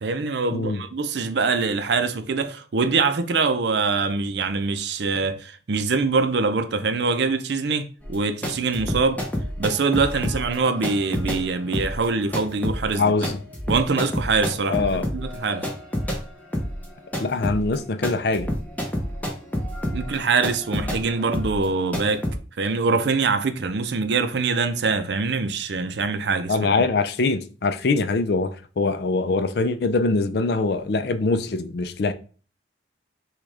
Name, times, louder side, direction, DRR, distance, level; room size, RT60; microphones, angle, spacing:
voice 1, 0.0-9.2 9.6-13.3 13.7-15.7 19.9-22.3 22.6-26.7, right 4 dB, 65° right, 0.5 m, -24 dB
voice 2, 0.5-0.8 12.9-13.4 14.7-15.1 17.2-18.5 26.5-32.1, left 3 dB, 55° left, 0.4 m, -23 dB
sound 1, 8.0-16.2 16.5-22.4, equal, 10° left, 0.8 m, -29 dB
6.2 x 2.3 x 3.3 m
head